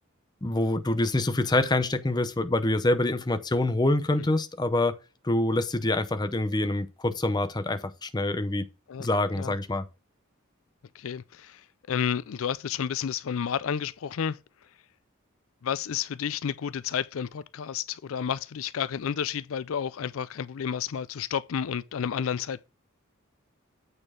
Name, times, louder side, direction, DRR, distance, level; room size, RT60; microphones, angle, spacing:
voice 1, 0.4-4.9 5.2-8.7 9.0-9.9, left 2 dB, 20° left, 0.7 m, -26 dB
voice 2, 11.0-11.6 11.9-14.4 15.6-22.6, left 8 dB, 75° left, 0.4 m, -31 dB
8.7 x 4.4 x 4.9 m
head